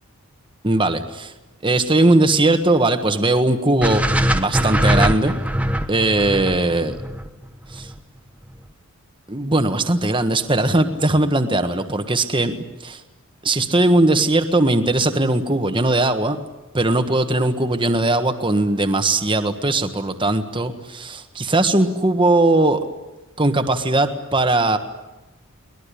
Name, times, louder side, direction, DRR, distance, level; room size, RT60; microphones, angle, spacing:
voice 1, 0.6-1.3 1.6-4.0 4.3-5.3 5.9-6.9 7.7-7.9 9.3-12.5 12.8-13.0 13.4-16.4 16.7-22.8 23.4-24.8, right 2 dB, 20° right, 7 dB, 1.5 m, -19 dB
sound 1, 3.8-8.0, equal, 5° right, 1.2 m, -21 dB
23.0 x 20.0 x 10.0 m, 1.0 s
head